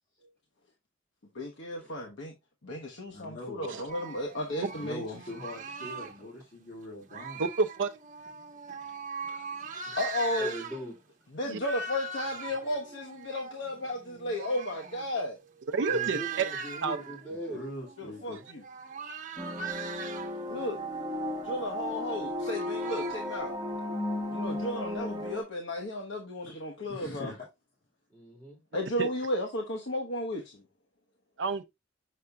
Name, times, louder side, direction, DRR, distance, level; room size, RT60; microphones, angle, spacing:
voice 1, 1.3-2.3 2.6-5.0 10.0-10.6 11.3-15.4 18.0-18.6 20.5-20.8 21.4-23.5 24.3-27.3 28.7-30.6, left 1 dB, 75° left, 1.1 m, -34 dB
voice 2, 3.1-3.6 4.7-7.5 17.5-18.4 26.4-26.6 26.8-27.5, left 1 dB, 50° left, 2.2 m, -42 dB
sound 1, 3.9-6.2 7.1-10.9 11.4-23.4, right 5 dB, 45° right, 1.0 m, -41 dB
voice 3, 7.4-8.0 11.5-11.6 15.7-16.4 16.8-17.0 18.3-18.4 29.0-29.1 31.4-31.6, right 4 dB, 75° right, 0.5 m, -29 dB
voice 4, 10.4-11.0 15.9-17.7 28.1-28.6, right 1 dB, 10° left, 2.8 m, -41 dB
sound 2, 19.4-25.4, left 1 dB, 20° right, 1.3 m, -35 dB
6.6 x 6.5 x 2.4 m
head